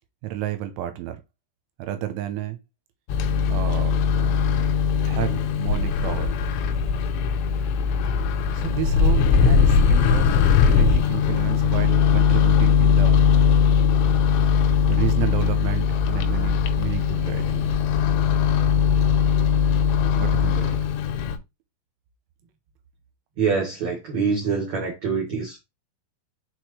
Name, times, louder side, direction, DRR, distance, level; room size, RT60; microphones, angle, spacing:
voice 1, 0.2-1.2 1.8-2.6 3.5-4.0 5.0-6.3 8.5-13.2 14.9-17.7 20.1-20.8, right 13 dB, 85° right, 3.0 m, -31 dB
Microwave oven, 3.1-21.4, left 6 dB, 80° left, 2.8 m, -20 dB
voice 2, 23.4-25.6, right 5 dB, 60° right, 1.8 m, -25 dB
6.5 x 4.6 x 3.2 m
omnidirectional pair, 5.8 m